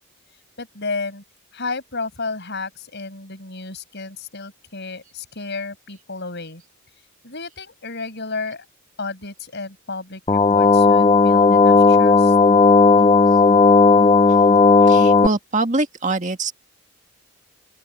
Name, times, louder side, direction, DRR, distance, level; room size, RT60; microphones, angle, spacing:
voice 1, 0.6-1.2 1.5-6.6 7.2-8.6 9.0-12.3, left 3 dB, 50° left, 7.4 m, -32 dB
sound 1, 10.3-15.3, left 4 dB, 25° left, 0.5 m, -13 dB
voice 2, 14.8-16.5, right 2 dB, 35° right, 1.9 m, -23 dB
open air
head